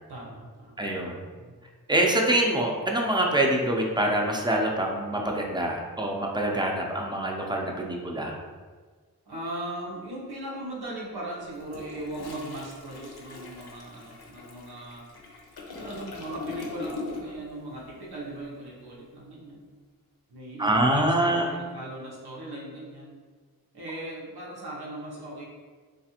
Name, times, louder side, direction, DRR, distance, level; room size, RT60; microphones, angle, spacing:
voice 1, 0.1-0.9 1.3-1.6 9.2-15.1 15.7-19.7 20.3-23.2 23.7-25.4, right 1 dB, 90° right, -4 dB, 0.8 m, -38 dB
voice 2, 0.8-1.2 1.9-8.4 20.6-21.5, right 1 dB, 10° right, 0 dB, 0.5 m, -25 dB
Toilet flush, 11.5-17.5 17.8-18.0, left 3 dB, 80° left, 0.6 m, -41 dB
3.2 x 2.4 x 2.8 m, 1.5 s
wide cardioid pair, 45°, 37 cm